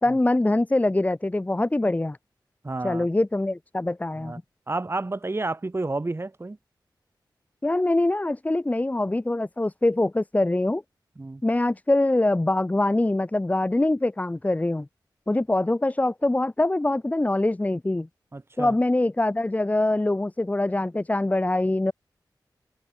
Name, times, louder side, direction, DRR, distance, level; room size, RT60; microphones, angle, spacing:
voice 1, 0.0-2.2 2.8-4.3 7.6-10.8 11.4-14.9 15.3-18.1 18.6-21.9, left 2 dB, 20° left, 0.7 m, -23 dB
voice 2, 2.6-3.1 4.2-4.4 4.7-6.6 11.2-11.4 18.3-18.7, right 2 dB, 30° right, 2.1 m, -30 dB
wide cardioid pair, 75°, 8 cm